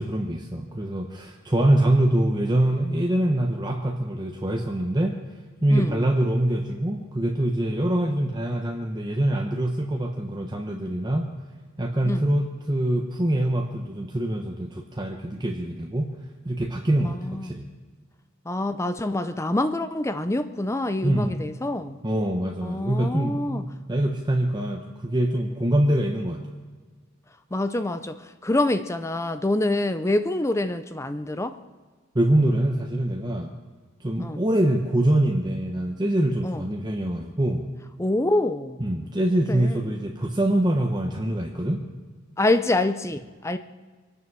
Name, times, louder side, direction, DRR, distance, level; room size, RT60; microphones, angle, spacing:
voice 1, 0.0-5.2 5.6-11.3 11.8-16.1 16.4-17.7 21.0-21.4 22.0-26.4 32.1-33.5 34.0-37.7 38.8-41.8, right 1 dB, 20° right, 1 dB, 0.9 m, -24 dB
voice 2, 5.7-6.0 12.0-12.2 17.0-17.5 18.5-22.0 22.6-23.6 27.5-31.6 34.2-34.4 36.4-36.6 38.0-38.8 39.5-39.8 42.4-43.6, left 2 dB, 15° left, 11 dB, 0.5 m, -26 dB
24.5 x 9.7 x 6.1 m, 1.4 s
head